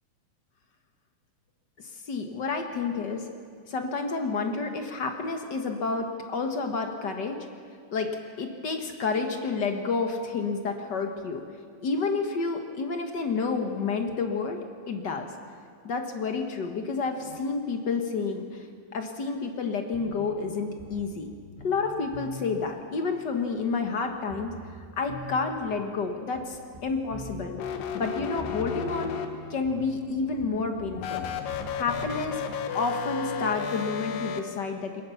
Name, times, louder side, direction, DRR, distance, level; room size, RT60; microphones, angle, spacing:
voice 1, 1.8-3.3 3.7-7.4 7.9-8.1 8.4-11.4 11.8-14.6 14.9-15.3 15.8-18.7 18.9-21.3 21.6-24.5 25.0-29.2 29.5-31.2 31.7-32.4 32.7-35.0, left 4 dB, 50° left, 4 dB, 1.3 m, -30 dB
sound 1, 19.9-32.3, equal, 15° right, 6.7 m, -44 dB
sound 2, 27.5-29.7 31.0-34.4, left 6 dB, 90° left, 2.9 m, -33 dB
21.5 x 18.5 x 7.1 m, 2.1 s
omnidirectional pair, 3.8 m